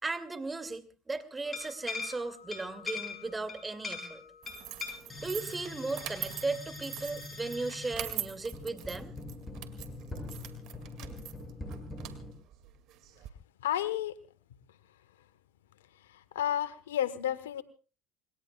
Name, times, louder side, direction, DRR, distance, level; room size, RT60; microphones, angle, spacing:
voice 1, 0.0-4.2 5.2-9.1, right 3 dB, 15° right, 9 dB, 2.4 m, -36 dB
sound 1, 1.4-12.3, left 3 dB, 20° left, 7.4 m, -42 dB
sound 2, 4.4-13.3, right 12 dB, 60° right, 2.3 m, -43 dB
voice 2, 13.6-14.1 16.3-17.6, left 11 dB, 85° left, 16 dB, 1.2 m, -31 dB
27.0 x 21.5 x 2.4 m, 0.37 s
hypercardioid pair, 80°, 0 cm